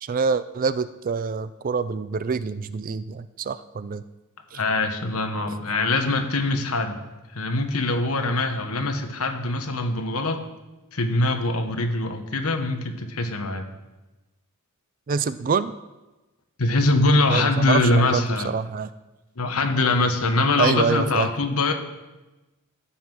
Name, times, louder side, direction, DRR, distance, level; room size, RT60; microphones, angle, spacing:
voice 1, 0.0-4.0 4.5-4.6 15.1-15.8 17.3-18.9 20.6-21.3, right 5 dB, 40° right, 14 dB, 0.4 m, -26 dB
voice 2, 4.5-6.9 7.3-10.5 10.9-13.6 16.6-18.5 19.4-21.7, left 2 dB, 75° left, 6 dB, 1.3 m, -23 dB
14.0 x 5.8 x 6.1 m, 1.1 s
head